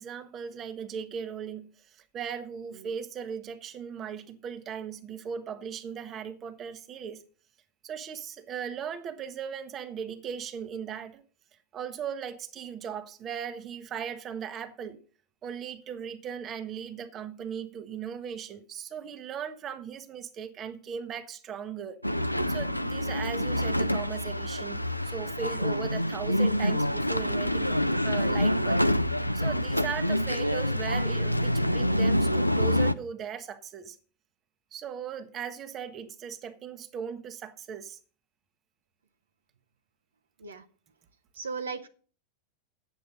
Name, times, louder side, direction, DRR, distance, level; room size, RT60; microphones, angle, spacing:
voice 1, 0.0-7.2 7.8-11.2 11.7-15.0 15.4-22.0 22.5-28.8 29.3-34.0 34.7-38.0, right 7 dB, 30° right, 1.0 m, -38 dB
sound 1, 22.0-32.9, equal, 90° left, 0.4 m, -26 dB
voice 2, 41.3-41.9, right 4 dB, 70° right, 0.9 m, -36 dB
9.1 x 8.0 x 5.3 m
figure-of-eight pair, 90°, 0 cm